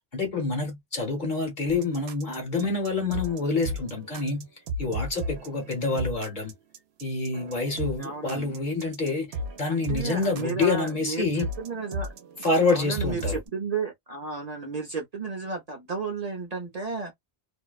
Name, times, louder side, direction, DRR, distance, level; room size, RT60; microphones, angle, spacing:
voice 1, 0.1-4.5 4.8-6.5 7.0-9.3 9.6-11.5 12.4-13.4, left 3 dB, 50° left, 1.1 m, -27 dB
sound 1, 1.7-13.5, right 1 dB, 75° right, 0.9 m, -35 dB
voice 2, 8.0-8.6 9.7-12.1 12.7-17.2, right 4 dB, 40° right, 0.7 m, -33 dB
2.6 x 2.1 x 2.3 m
omnidirectional pair, 1.1 m